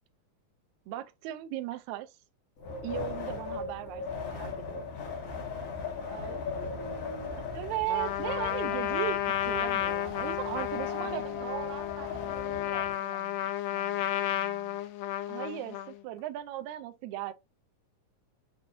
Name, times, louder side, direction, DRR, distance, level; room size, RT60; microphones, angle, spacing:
voice 1, 0.9-2.1 2.8-4.9 7.4-11.7 15.3-17.3, right 13 dB, 80° right, 1.7 m, -37 dB
Wind, 2.6-12.9, left 4 dB, 55° left, 2.0 m, -39 dB
voice 2, 6.1-7.5 11.0-14.8, right 4 dB, 55° right, 2.2 m, -48 dB
Trumpet, 7.9-16.0, left 13 dB, 90° left, 1.5 m, -32 dB
7.1 x 2.8 x 2.6 m
omnidirectional pair, 3.8 m